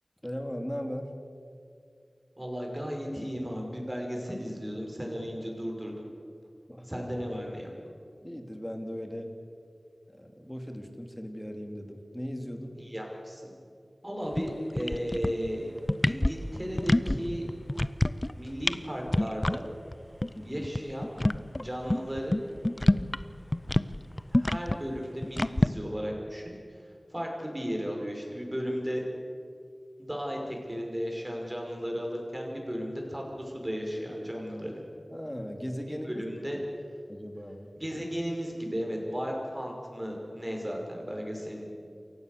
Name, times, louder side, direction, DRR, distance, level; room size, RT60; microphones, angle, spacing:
voice 1, 0.2-1.1 6.7-7.1 8.2-9.3 10.1-12.8 20.3-20.6 35.1-36.2 36.5-36.6 37.1-37.7, equal, 10° left, 4 dB, 2.7 m, -38 dB
voice 2, 2.4-6.1 6.8-7.7 12.8-13.4 14.0-15.7 16.0-17.5 18.3-19.6 20.4-21.1 21.6-22.4 24.3-26.8 27.1-29.0 30.0-34.7 35.9-36.6 37.8-41.6, equal, 15° right, 0 dB, 5.7 m, -35 dB
sound 1, 14.3-14.5 14.8-15.5 15.8-17.2 17.5-18.3 18.6-18.8 19.1-19.6 19.9-20.0 20.2-20.3 20.6-23.2 23.5-25.7, left 1 dB, 25° left, 0.6 m, -26 dB
28.0 x 15.5 x 6.8 m, 2.3 s
wide cardioid pair, 55°, 0 cm